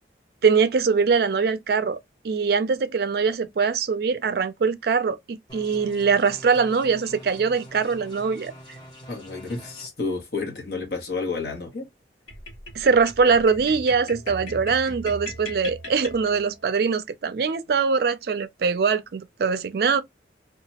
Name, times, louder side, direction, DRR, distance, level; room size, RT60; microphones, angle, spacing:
voice 1, 0.4-2.0 2.2-8.5 12.8-20.0, right 5 dB, 55° right, 0.4 m, -22 dB
sound 1, 5.5-9.9, equal, 25° left, 0.9 m, -45 dB
voice 2, 9.1-11.9, left 4 dB, 60° left, 1.0 m, -30 dB
sound 2, 12.3-16.7, left 1 dB, 85° left, 1.3 m, -39 dB
2.8 x 2.3 x 2.8 m
head